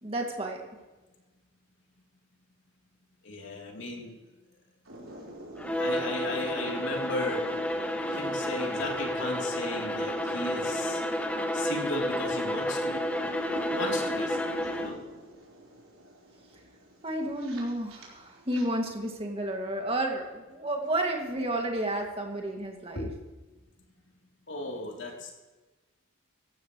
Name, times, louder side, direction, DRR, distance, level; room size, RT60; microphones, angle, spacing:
voice 1, 0.0-0.6 17.0-23.1, right 1 dB, 25° right, 1 dB, 2.3 m, -31 dB
voice 2, 3.2-4.2 5.8-7.4 8.1-11.0 11.5-13.0 13.7-14.9 22.9-23.1 24.5-25.3, left 2 dB, 60° left, 0 dB, 3.5 m, -35 dB
sound 1, 4.8-18.7, right 1 dB, 80° right, 4.6 m, -43 dB
Bowed string instrument, 5.6-15.1, left 1 dB, 5° left, 0.9 m, -31 dB
17.5 x 14.5 x 3.2 m, 1.2 s
head